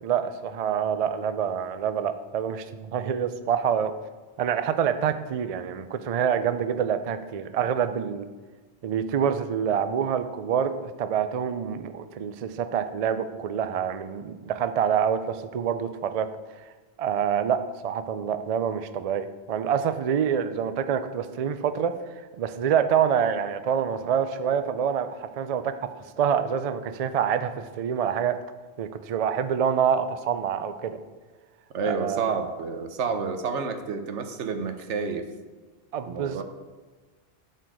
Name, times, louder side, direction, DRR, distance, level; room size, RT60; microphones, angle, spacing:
voice 1, 0.0-3.9 4.4-8.3 8.8-16.3 17.0-21.9 22.4-28.4 28.8-31.0 31.8-32.2 35.9-36.4, right 8 dB, 55° right, 11 dB, 0.4 m, -26 dB
voice 2, 31.7-35.2 36.0-36.4, right 5 dB, 85° right, 8 dB, 1.1 m, -29 dB
11.0 x 4.6 x 4.7 m, 1.3 s
omnidirectional pair, 1.2 m